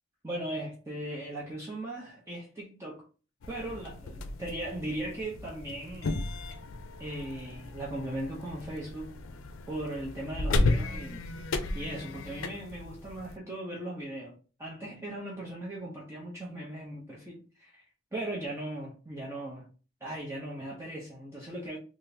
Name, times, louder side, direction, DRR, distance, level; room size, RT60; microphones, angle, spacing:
voice 1, 0.2-3.0 3.5-6.2 7.0-9.1 9.7-11.3 11.7-17.8 18.1-19.7 20.0-21.8, right 1 dB, 15° right, 0.6 m, -38 dB
sound 1, 3.4-13.4, left 2 dB, 80° left, 0.5 m, -34 dB
3.5 x 2.4 x 2.7 m
head